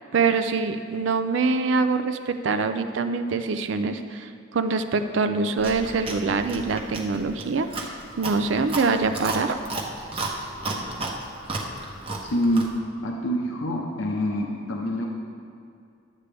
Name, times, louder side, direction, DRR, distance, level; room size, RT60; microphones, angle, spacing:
voice 1, 0.1-7.7 8.2-9.6, right 4 dB, 65° right, 8 dB, 0.4 m, -24 dB
Chewing mastication, 5.6-12.8, right 2 dB, 30° right, 0.8 m, -33 dB
voice 2, 12.2-12.7 13.0-15.1, equal, 75° left, 0 dB, 0.8 m, -26 dB
11.0 x 8.2 x 3.4 m, 2.4 s
head